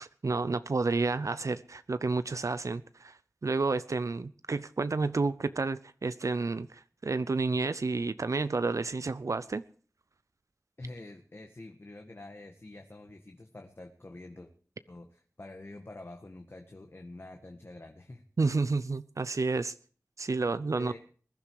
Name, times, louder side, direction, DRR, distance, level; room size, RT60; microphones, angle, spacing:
voice 1, 0.0-9.6 18.4-19.7 20.2-20.9, right 3 dB, 75° right, 14 dB, 0.6 m, -30 dB
voice 2, 10.8-14.5 14.9-18.2 20.7-21.0, left 2 dB, 50° left, 4 dB, 1.7 m, -47 dB
21.0 x 11.5 x 4.7 m, 0.43 s
wide cardioid pair, 65°, 5 cm